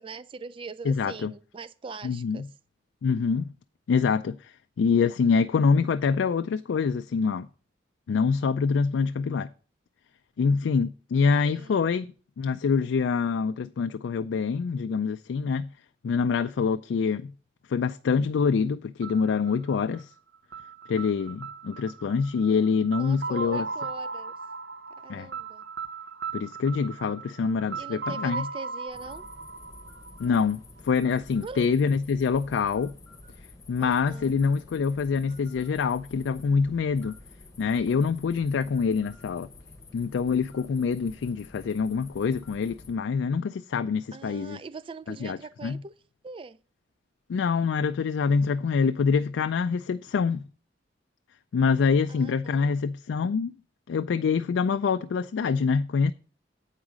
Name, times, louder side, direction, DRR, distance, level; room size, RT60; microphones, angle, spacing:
voice 1, 0.0-2.5 11.4-11.9 23.0-24.3 25.0-25.6 27.8-29.3 31.4-31.7 33.8-34.3 44.1-46.0 46.2-46.6 52.1-52.7, right 4 dB, 30° right, 0.3 m, -42 dB
voice 2, 0.9-1.3 2.0-2.4 3.0-3.5 3.9-7.5 8.1-9.5 10.4-15.7 16.0-17.3 17.7-20.1 20.9-23.7 25.1-25.3 26.3-28.5 30.2-32.9 33.7-37.1 37.6-39.5 39.9-44.6 45.2-45.8 47.3-50.4 51.5-53.5 53.9-56.1, left 5 dB, 80° left, 0.3 m, -25 dB
sound 1, 19.0-30.8, right 4 dB, 60° right, 0.8 m, -38 dB
sound 2, 28.9-42.9, left 2 dB, 20° left, 0.9 m, -49 dB
8.2 x 4.9 x 6.2 m
head